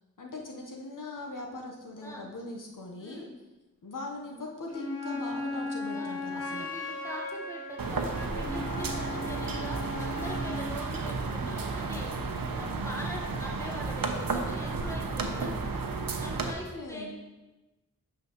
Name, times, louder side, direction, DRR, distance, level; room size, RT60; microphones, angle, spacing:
voice 1, 0.2-3.3 3.8-6.7 16.4-17.1, left 2 dB, 65° left, 1 dB, 1.0 m, -40 dB
voice 2, 3.0-3.3 5.9-15.5 16.2-17.2, equal, 10° left, -2 dB, 1.5 m, -42 dB
Wind instrument woodwind instrument, 4.7-10.7, left 2 dB, 50° left, 2.2 m, -37 dB
sound 1, 7.8-16.5, right 3 dB, 85° right, 0.8 m, -33 dB
9.5 x 6.1 x 3.0 m, 1.1 s
wide cardioid pair, 85°, 34 cm